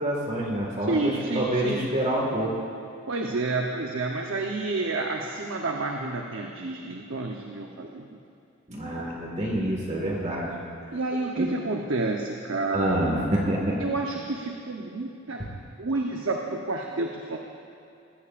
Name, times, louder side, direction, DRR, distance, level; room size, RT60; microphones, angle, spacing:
voice 1, 0.0-2.5 8.7-10.5 11.4-11.5 12.7-13.8, right 1 dB, 35° right, -2 dB, 1.9 m, -27 dB
voice 2, 0.8-1.8 3.1-8.1 8.9-9.1 10.9-13.0 13.8-15.5 15.8-17.4, right 2 dB, 70° right, 1 dB, 0.9 m, -29 dB
20.5 x 15.5 x 2.5 m, 2.6 s
head